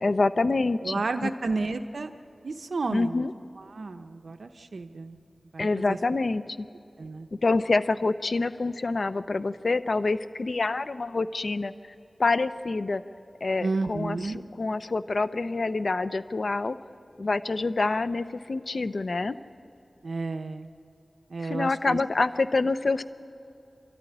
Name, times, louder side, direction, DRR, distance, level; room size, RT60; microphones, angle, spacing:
voice 1, 0.0-1.3 2.9-3.3 5.6-6.4 7.4-11.7 12.2-13.0 13.4-14.2 14.6-16.8 17.2-19.4 21.4-23.0, left 3 dB, 65° left, 12 dB, 0.7 m, -26 dB
voice 2, 0.8-2.1 2.4-3.3 3.6-5.2 5.5-6.0 7.0-7.3 13.6-14.5 20.0-20.7 21.3-22.0, right 3 dB, 80° right, 7 dB, 0.8 m, -32 dB
27.0 x 13.5 x 10.0 m, 2.7 s
wide cardioid pair, 60°, 0 cm